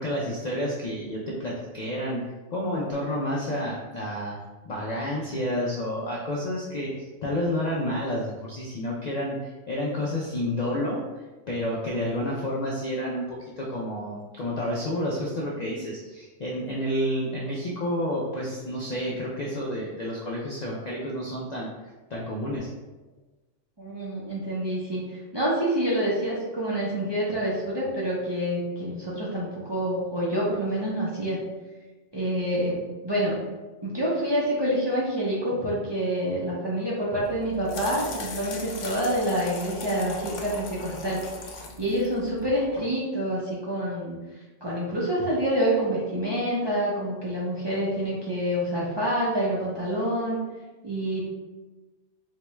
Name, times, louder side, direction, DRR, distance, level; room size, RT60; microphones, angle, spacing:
voice 1, 0.0-2.2 2.5-4.4 4.6-21.7 22.1-22.7, left 1 dB, 60° left, -4 dB, 0.4 m, -30 dB
voice 2, 23.8-31.4 32.1-32.8 33.0-33.4 33.8-41.2 41.8-44.2 44.6-50.4 50.8-51.3, equal, 30° right, -7 dB, 0.5 m, -27 dB
sound 1, 37.2-42.8, left 2 dB, 80° left, 0.9 m, -39 dB
3.7 x 2.2 x 3.0 m, 1.2 s
omnidirectional pair, 1.2 m